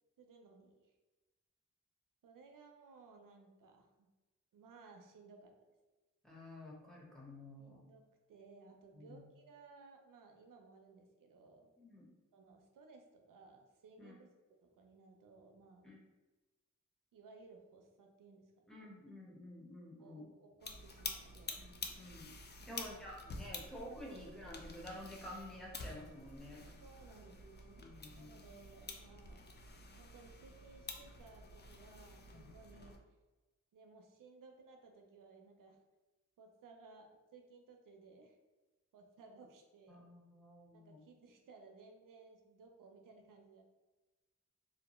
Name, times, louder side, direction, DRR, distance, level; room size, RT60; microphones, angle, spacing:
voice 1, 0.2-0.9 2.2-4.1 4.5-5.5 7.6-11.7 12.3-14.3 14.6-15.9 17.1-18.8 20.0-21.8 22.7-23.0 26.8-29.5 29.9-33.0 33.7-35.8 36.4-38.4 38.9-40.1 40.7-43.6, right 4 dB, 80° right, 3 dB, 0.5 m, -60 dB
voice 2, 6.2-7.8 8.9-9.2 11.8-12.1 14.0-14.1 15.8-16.0 18.7-20.3 21.6-22.3 22.7-26.7 27.8-28.3 39.9-41.0, left 1 dB, ahead, -4 dB, 0.8 m, -51 dB
sound 1, 20.6-33.0, left 3 dB, 35° left, 0.4 m, -49 dB
2.6 x 2.1 x 3.0 m, 1.2 s
cardioid pair, 40°, 32 cm